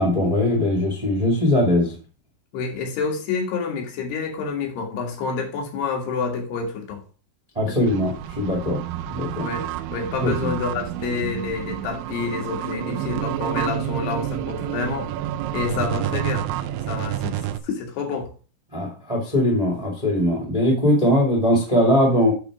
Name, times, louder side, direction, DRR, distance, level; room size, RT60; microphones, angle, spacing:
voice 1, 0.0-1.9 7.5-8.8 9.1-9.4 10.2-10.5 18.7-22.3, left 1 dB, 15° right, -2 dB, 1.4 m, -20 dB
voice 2, 2.5-7.0 7.7-7.8 9.4-15.1 15.5-16.5 16.9-17.4 17.6-18.3, left 5 dB, 85° left, 2 dB, 3.7 m, -28 dB
sound 1, 7.9-17.6, right 12 dB, 85° right, 2.0 m, -29 dB
11.0 x 3.9 x 4.8 m, 0.36 s
omnidirectional pair, 4.5 m